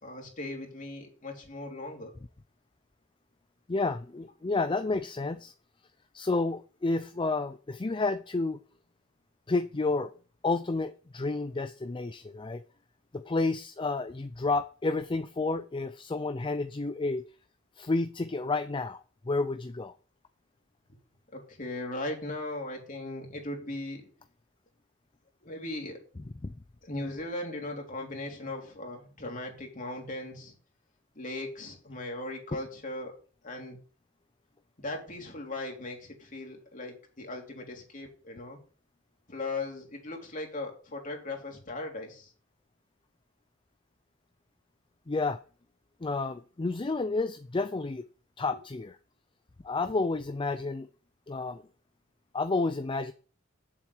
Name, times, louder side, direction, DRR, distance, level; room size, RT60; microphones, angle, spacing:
voice 1, 0.0-2.2 21.3-24.1 25.4-26.0 26.8-30.5 31.1-33.1 33.4-33.8 34.8-38.6 39.3-42.3, left 2 dB, 40° left, 1 dB, 3.1 m, -38 dB
voice 2, 3.7-5.5 6.1-8.6 9.5-10.1 10.4-12.6 13.1-17.2 17.8-19.0 19.3-19.9 26.4-26.5 45.1-45.4 46.0-48.0 48.4-49.0 49.6-50.9 51.3-51.6 52.3-53.1, left 3 dB, 25° left, 11 dB, 0.5 m, -30 dB
7.6 x 7.3 x 8.4 m, 0.40 s
head